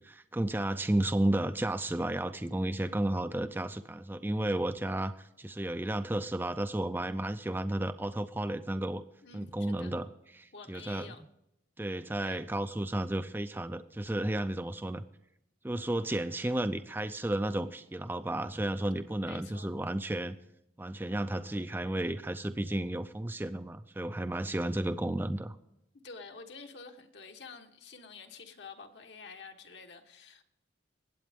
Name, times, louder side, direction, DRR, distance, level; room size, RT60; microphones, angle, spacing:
voice 1, 0.0-9.0 9.3-10.1 10.3-11.1 11.8-15.0 15.6-20.4 20.8-25.6, right 1 dB, 10° right, 10 dB, 0.4 m, -32 dB
voice 2, 9.2-9.9 10.5-11.2 12.2-12.4 19.2-19.7 26.0-30.4, left 4 dB, 70° left, 4 dB, 1.3 m, -49 dB
20.0 x 8.5 x 3.6 m, 0.81 s
head